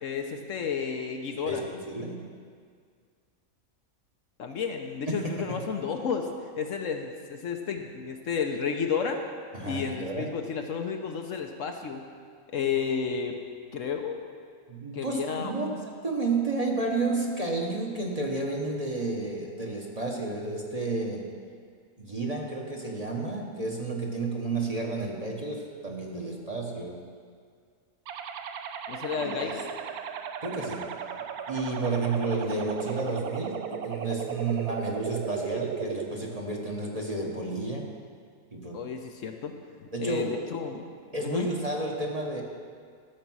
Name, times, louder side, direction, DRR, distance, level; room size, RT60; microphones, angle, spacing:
voice 1, 0.0-1.6 4.4-6.3 6.5-9.2 9.6-12.0 12.5-13.4 13.7-14.2 14.9-15.5 28.9-29.7 38.7-39.6 40.0-40.9 41.2-41.5, left 6 dB, 65° left, 4 dB, 1.1 m, -32 dB
voice 2, 1.4-2.2 5.1-5.6 9.5-10.3 14.7-15.7 16.0-21.3 22.0-27.0 29.2-29.5 30.4-30.9 31.5-37.9 38.5-38.9 39.9-40.4 41.1-42.4, right 3 dB, 30° right, -1 dB, 1.0 m, -31 dB
sound 1, 28.1-36.1, right 8 dB, 90° right, 1.1 m, -36 dB
13.5 x 6.6 x 6.1 m, 2.1 s
omnidirectional pair, 1.5 m